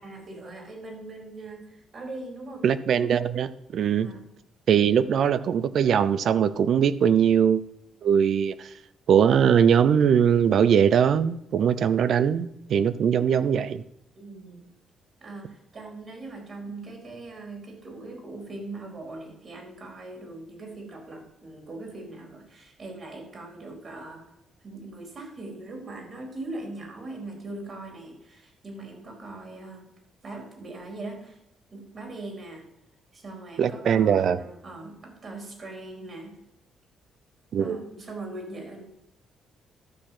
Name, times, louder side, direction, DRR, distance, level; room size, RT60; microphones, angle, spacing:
voice 1, 0.0-3.0 4.0-4.2 14.1-14.6 15.2-24.2 24.6-29.8 30.2-31.4 31.7-32.6 33.1-36.4 37.6-38.9, right 2 dB, 45° right, 2 dB, 4.2 m, -40 dB
voice 2, 2.6-4.1 4.7-7.6 8.0-8.7 9.1-13.8 33.6-34.4 37.5-37.8, right 8 dB, 65° right, 15 dB, 0.6 m, -21 dB
12.5 x 6.4 x 6.0 m, 0.79 s
cardioid pair, 90°, 0 cm